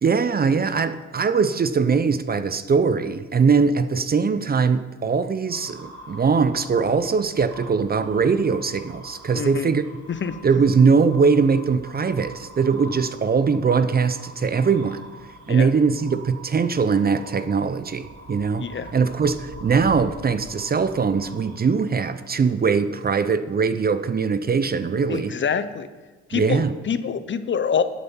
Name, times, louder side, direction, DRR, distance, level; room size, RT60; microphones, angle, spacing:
voice 1, 0.0-9.8 10.4-15.0 15.5-18.7 18.9-25.3 26.3-26.7, right 5 dB, 30° right, 13 dB, 0.6 m, -21 dB
sound 1, 5.5-22.5, right 1 dB, 55° right, 3.0 m, -44 dB
voice 2, 9.3-9.7 10.1-10.4 15.5-15.7 18.6-18.9 25.1-25.9 26.3-27.8, left 6 dB, 40° left, 12 dB, 0.7 m, -26 dB
11.5 x 8.5 x 5.6 m, 1.3 s
cardioid pair, 90°, 30 cm